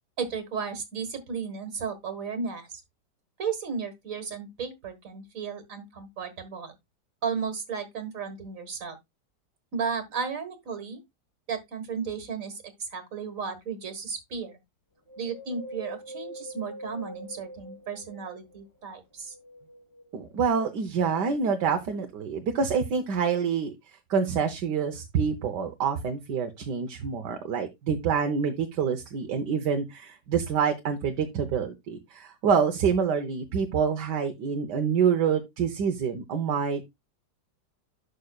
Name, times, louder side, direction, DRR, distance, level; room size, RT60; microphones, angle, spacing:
voice 1, 0.2-2.8 3.4-6.8 7.2-9.0 9.7-11.0 11.5-14.6 15.2-19.4, right 6 dB, 50° right, 1.8 m, -34 dB
Wind, 15.1-18.6 19.2-20.4 21.0-21.1, right 1 dB, 75° left, 2.4 m, -43 dB
voice 2, 20.1-23.7 24.1-36.8, right 6 dB, 75° right, 1.5 m, -27 dB
11.5 x 5.7 x 2.3 m
omnidirectional pair, 1.9 m